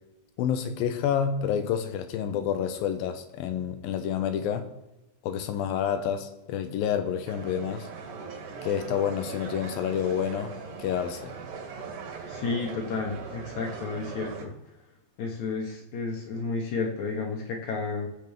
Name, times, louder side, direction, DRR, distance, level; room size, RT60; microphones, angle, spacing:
voice 1, 0.4-4.7 5.2-7.9 8.6-11.3, left 8 dB, 85° left, 2.6 m, -29 dB
sound 1, 7.3-14.4, right 5 dB, 60° right, 3.4 m, -40 dB
voice 2, 12.3-14.5 15.2-18.1, left 4 dB, 60° left, 2.3 m, -31 dB
19.5 x 7.6 x 3.6 m
omnidirectional pair, 4.1 m